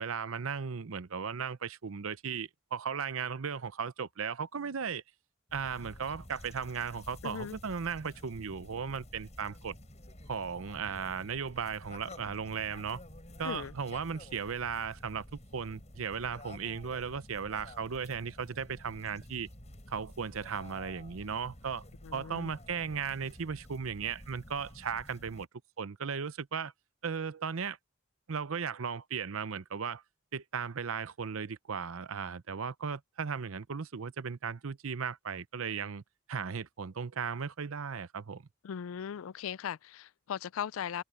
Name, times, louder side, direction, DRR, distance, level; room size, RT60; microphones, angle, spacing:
voice 1, 0.0-5.0 5.5-9.8 10.3-13.0 13.4-15.2 15.5-19.5 19.9-21.8 22.1-25.5 25.8-26.7 27.0-27.8 28.3-30.0 30.3-36.0 36.3-38.4, right 6 dB, 85° right, 0.7 m, -36 dB
sound 1, 5.5-25.5, left 1 dB, 35° left, 6.3 m, -51 dB
voice 2, 7.2-7.6 13.4-13.7 22.0-22.5 38.6-41.0, left 8 dB, 80° left, 0.4 m, -38 dB
head